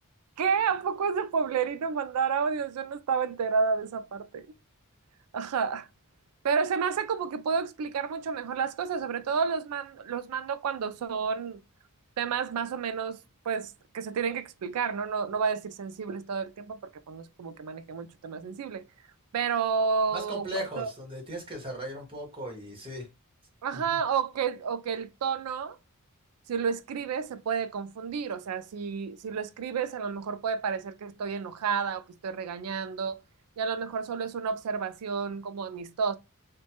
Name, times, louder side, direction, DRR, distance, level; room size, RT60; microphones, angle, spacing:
voice 1, 0.4-4.5 5.3-5.9 6.4-11.6 12.2-13.2 13.4-16.8 17.1-18.9 19.3-20.9 23.6-25.8 26.5-33.2 33.6-36.2, right 6 dB, 90° right, 0.4 m, -30 dB
voice 2, 20.1-23.1 23.9-24.0, equal, 25° right, 1.2 m, -37 dB
3.0 x 2.2 x 2.8 m
head